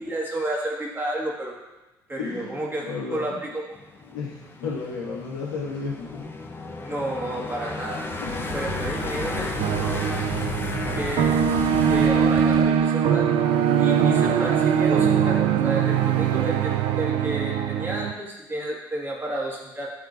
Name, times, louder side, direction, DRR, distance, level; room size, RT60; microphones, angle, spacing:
voice 1, 0.0-1.5 2.1-3.6 6.8-8.0 8.5-9.5 11.0-11.4 11.9-13.3 13.8-19.9, right 1 dB, 20° right, -3 dB, 1.9 m, -31 dB
voice 2, 2.2-3.4 4.0-6.3 8.2-8.5 10.6-11.0 13.9-14.3, left 4 dB, 70° left, -7 dB, 2.1 m, -34 dB
sound 1, 3.7-12.1, left 3 dB, 20° left, 0.9 m, -34 dB
sound 2, 6.0-6.2 7.7-7.8 7.9-12.9 14.8-14.9, right 1 dB, 80° right, 0.9 m, -35 dB
sound 3, 9.6-18.1, right 8 dB, 55° right, 0.4 m, -22 dB
10.5 x 3.7 x 2.6 m, 1.1 s
figure-of-eight pair, 55°, 12 cm